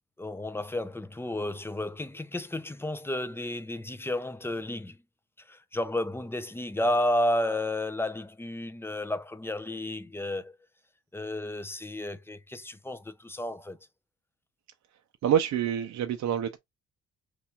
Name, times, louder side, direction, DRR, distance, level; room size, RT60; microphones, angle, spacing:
voice 1, 0.2-5.0 5.5-10.6 11.1-13.8, left 1 dB, 10° left, 0.5 m, -32 dB
voice 2, 15.2-16.6, right 9 dB, 65° right, 0.5 m, -26 dB
4.4 x 3.0 x 2.3 m
cardioid pair, 90°, 30 cm